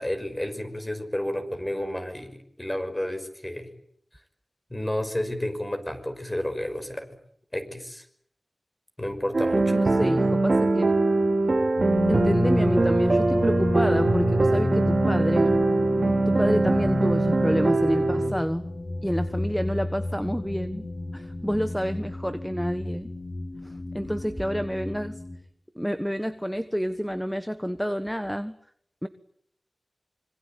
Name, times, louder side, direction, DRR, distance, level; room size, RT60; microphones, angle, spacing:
voice 1, 0.0-3.7 4.7-7.1 7.5-8.0 9.0-9.8, left 1 dB, 15° left, 7 dB, 5.8 m, -31 dB
sound 1, 9.3-18.3, right 2 dB, 55° right, 2.4 m, -22 dB
voice 2, 9.7-10.9 12.1-15.6 16.3-18.7 19.0-20.9 21.1-23.1 23.6-25.2 25.7-28.6 29.0-29.1, equal, ahead, 11 dB, 1.3 m, -29 dB
sound 2, 11.8-25.4, left 2 dB, 75° left, 7.6 m, -31 dB
26.0 x 25.0 x 9.1 m, 0.68 s
wide cardioid pair, 80°, 0 cm